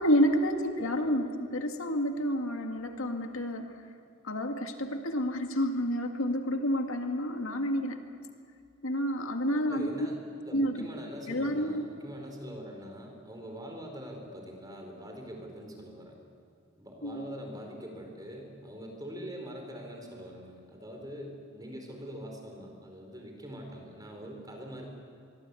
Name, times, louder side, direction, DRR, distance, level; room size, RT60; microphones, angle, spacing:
voice 1, 0.0-3.7 4.3-8.0 8.8-9.9 10.5-10.9 11.3-11.8 17.0-17.2, equal, 80° left, 5 dB, 2.0 m, -29 dB
voice 2, 0.7-1.1 9.7-16.1 16.8-24.9, equal, 20° right, 2 dB, 4.6 m, -43 dB
24.0 x 23.5 x 8.4 m, 2.4 s
head